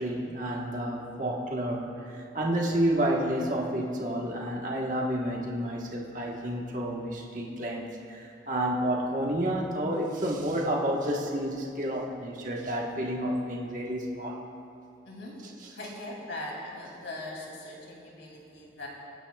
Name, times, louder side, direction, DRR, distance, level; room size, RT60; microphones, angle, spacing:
voice 1, 0.0-14.4 15.6-15.7, right 1 dB, 45° right, -1 dB, 1.4 m, -30 dB
voice 2, 15.0-15.4 15.7-18.9, left 1 dB, 90° left, -2 dB, 2.8 m, -40 dB
25.0 x 9.8 x 2.4 m, 2.5 s
head